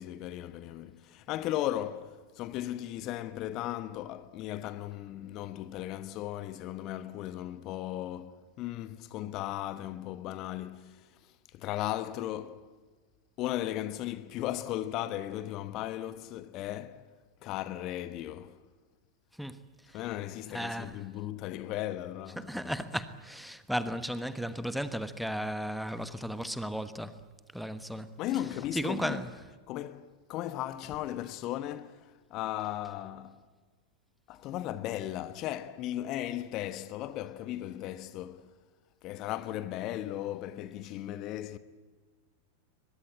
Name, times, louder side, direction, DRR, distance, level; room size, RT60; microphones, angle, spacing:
voice 1, 0.0-12.7 13.4-17.1 17.4-18.6 19.9-22.5 28.2-29.2 29.7-33.4 34.3-38.5 39.0-41.6, left 13 dB, 40° left, 1.1 m, -36 dB
voice 2, 20.5-21.0 22.4-27.1 27.5-28.1 28.7-29.3, equal, ahead, 1.3 m, -35 dB
22.5 x 22.0 x 9.0 m
figure-of-eight pair, 90°, 0 cm